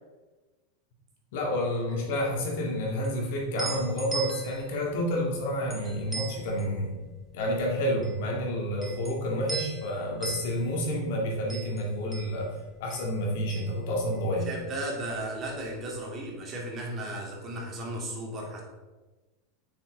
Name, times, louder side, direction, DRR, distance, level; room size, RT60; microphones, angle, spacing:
voice 1, 1.3-7.0 7.3-12.5 12.8-14.5, equal, 65° left, -1 dB, 2.0 m, -29 dB
sound 1, 2.4-14.6 14.9-16.0, right 6 dB, 10° right, 1.5 m, -41 dB
voice 2, 14.4-18.6, right 1 dB, 35° right, -1 dB, 2.2 m, -35 dB
6.6 x 6.1 x 3.8 m, 1.2 s
hypercardioid pair, 95°, 0 cm